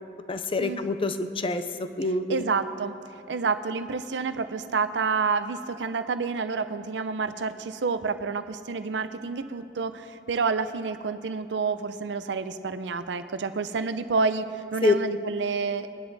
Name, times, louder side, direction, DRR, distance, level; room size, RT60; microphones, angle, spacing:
voice 1, 0.3-2.5 14.8-14.9, left 3 dB, 30° left, 9 dB, 0.6 m, -26 dB
voice 2, 2.3-2.9 3.3-15.9, right 4 dB, 85° right, 11 dB, 0.5 m, -29 dB
19.0 x 10.5 x 4.0 m, 2.7 s
head